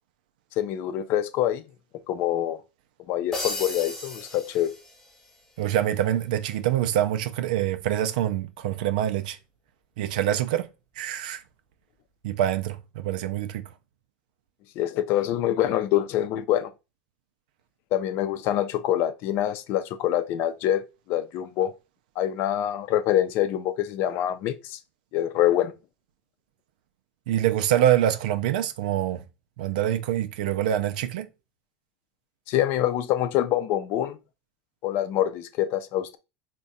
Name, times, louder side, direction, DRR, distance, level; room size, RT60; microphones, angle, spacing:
voice 1, 0.6-1.6 2.1-2.6 3.1-4.7 14.8-16.7 17.9-21.7 22.2-24.8 25.1-25.7 32.5-34.2 34.8-36.2, left 12 dB, 55° left, 0.5 m, -25 dB
sound 1, 3.3-5.4, left 2 dB, 10° left, 1.1 m, -35 dB
voice 2, 5.6-9.4 10.0-10.7 11.0-11.4 12.2-13.7 27.3-29.2 29.6-31.3, right 11 dB, 85° right, 0.4 m, -25 dB
3.6 x 2.2 x 3.9 m
supercardioid pair, 125°, 4 cm